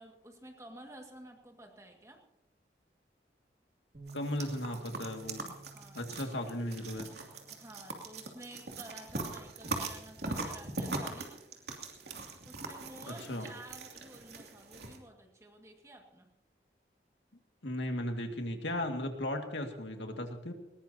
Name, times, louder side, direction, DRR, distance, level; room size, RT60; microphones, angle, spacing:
voice 1, 0.0-2.2 5.7-6.0 7.5-11.3 12.5-16.3, right 1 dB, 15° right, 3 dB, 2.0 m, -51 dB
Bass guitar, 3.9-10.2, right 2 dB, 45° right, 2.3 m, -54 dB
voice 2, 4.1-5.5 5.9-7.1 13.1-13.5 17.6-20.5, left 1 dB, 80° left, 4 dB, 2.2 m, -36 dB
sound 1, 4.1-15.0, right 3 dB, 65° right, 2.7 m, -41 dB
20.5 x 20.0 x 2.9 m, 0.89 s
head